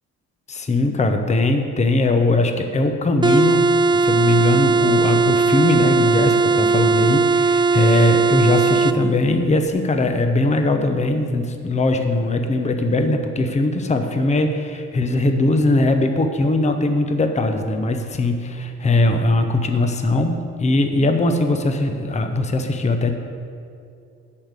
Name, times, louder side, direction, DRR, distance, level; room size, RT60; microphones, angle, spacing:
voice 1, 0.5-23.1, left 2 dB, 25° left, 6 dB, 0.8 m, -20 dB
sound 1, 3.2-9.0, right 4 dB, 15° right, 0.4 m, -18 dB
8.6 x 6.6 x 8.3 m, 2.4 s
cardioid pair, 90°, 30 cm